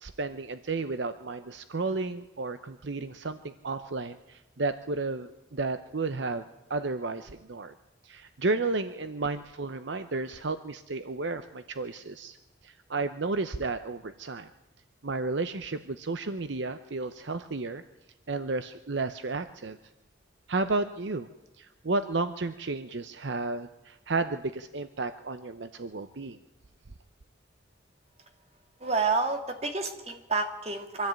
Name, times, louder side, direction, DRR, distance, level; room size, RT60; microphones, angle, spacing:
voice 1, 0.0-7.7 8.0-12.4 12.6-14.5 15.0-17.8 18.3-19.8 20.5-21.3 21.6-26.4, right 3 dB, 60° right, 10 dB, 0.8 m, -32 dB
voice 2, 28.8-31.1, right 4 dB, 30° right, 5 dB, 2.2 m, -29 dB
24.0 x 14.0 x 8.9 m, 1.0 s
head